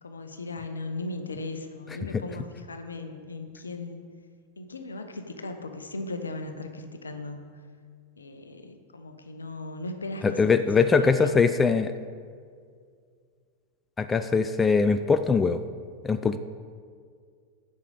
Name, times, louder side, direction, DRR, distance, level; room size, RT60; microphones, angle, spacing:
voice 1, 0.0-4.0 4.6-7.4 8.2-10.4 10.8-11.4, left 2 dB, 75° left, 7 dB, 0.9 m, -37 dB
voice 2, 10.2-11.9 14.0-15.6 16.0-16.4, left 5 dB, 15° left, 10 dB, 0.4 m, -22 dB
8.0 x 6.6 x 7.1 m, 2.1 s
figure-of-eight pair, 90°, 0 cm